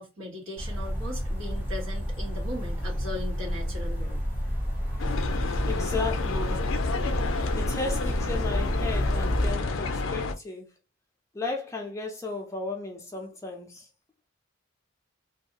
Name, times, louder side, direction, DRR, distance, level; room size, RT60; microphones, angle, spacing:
voice 1, 0.0-4.2, left 1 dB, 75° right, 1.4 m, -38 dB
sound 1, 0.6-9.5, equal, 10° right, 0.9 m, -30 dB
voice 2, 4.8-6.7 7.5-10.7 11.3-13.9, left 3 dB, 15° left, 0.4 m, -35 dB
sound 2, 5.0-10.4, left 3 dB, 75° left, 0.4 m, -30 dB
2.6 x 2.3 x 2.8 m
head